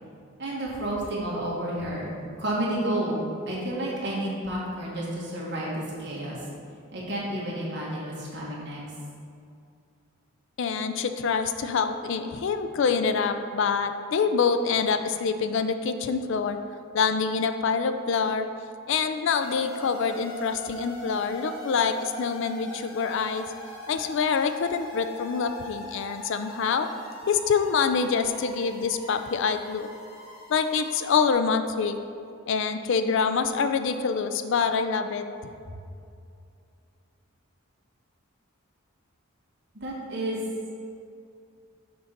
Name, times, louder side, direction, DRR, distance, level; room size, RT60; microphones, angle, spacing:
voice 1, 0.4-6.5 6.9-8.8 35.6-35.7 39.7-40.4, right 1 dB, 50° right, -6 dB, 1.7 m, -31 dB
voice 2, 10.6-16.6 16.9-18.5 18.9-23.5 23.9-26.9 27.3-29.9 30.5-32.0 32.5-35.2, left 5 dB, 55° left, 9 dB, 0.3 m, -26 dB
sound 1, 19.3-31.3, equal, 75° left, 1.2 m, -42 dB
6.5 x 3.9 x 5.8 m, 2.4 s
head